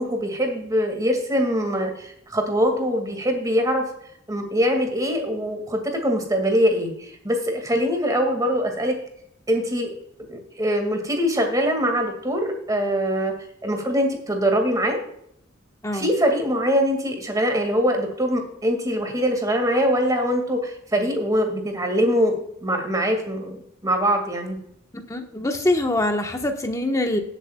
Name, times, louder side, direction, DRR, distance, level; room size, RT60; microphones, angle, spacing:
voice 1, 0.0-3.9 4.3-9.0 9.5-9.9 10.3-13.3 13.6-15.0 15.9-24.6, equal, 20° right, 4 dB, 2.2 m, -23 dB
voice 2, 24.9-27.2, left 1 dB, 15° left, 4 dB, 1.3 m, -24 dB
17.5 x 8.1 x 2.3 m, 0.71 s
head